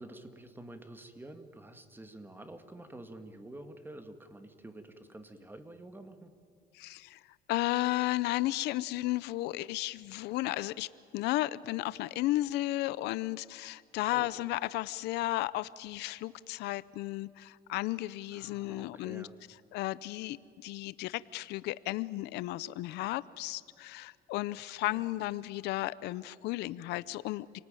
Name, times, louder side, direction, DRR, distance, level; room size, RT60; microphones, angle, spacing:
voice 1, 0.0-6.3 14.1-14.3 18.3-19.4 24.9-25.1, right 1 dB, 10° right, 8 dB, 2.1 m, -48 dB
voice 2, 6.7-7.2 7.5-19.3 19.7-27.6, left 17 dB, 85° left, 18 dB, 0.6 m, -34 dB
28.0 x 19.5 x 9.1 m, 2.4 s
cardioid pair, 110°, 17 cm